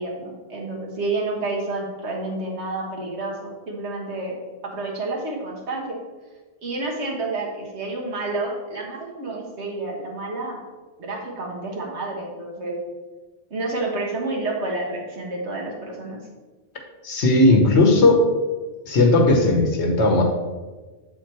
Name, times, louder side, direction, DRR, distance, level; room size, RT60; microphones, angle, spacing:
voice 1, 0.0-4.3 4.6-6.0 6.6-10.7 11.0-12.8 13.5-16.2, right 2 dB, 85° right, -2 dB, 1.7 m, -29 dB
voice 2, 17.0-18.3 18.9-20.2, left 2 dB, 85° left, 2 dB, 1.3 m, -16 dB
7.8 x 4.2 x 4.4 m, 1.3 s
omnidirectional pair, 1.1 m